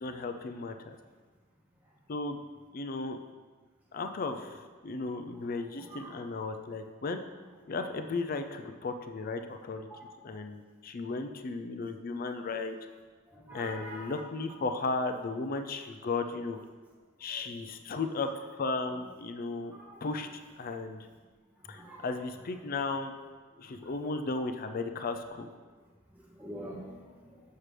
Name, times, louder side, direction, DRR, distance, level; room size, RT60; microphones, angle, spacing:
voice 1, 0.0-1.0 2.1-2.4 2.7-3.2 3.9-7.2 7.7-9.9 10.2-12.8 13.5-16.6 17.2-18.3 18.6-19.7 20.0-20.3 20.6-21.0 21.7-23.1 23.6-25.5, left 3 dB, 45° left, 7 dB, 0.4 m, -35 dB
voice 2, 5.8-6.2 9.9-10.2 12.5-12.6 13.3-14.2 17.3-17.5 19.7-20.0 21.7-22.3 22.6-22.7 23.8-24.1 26.1-27.4, right 1 dB, 10° right, -4 dB, 0.8 m, -46 dB
7.4 x 6.5 x 3.2 m, 1.4 s
head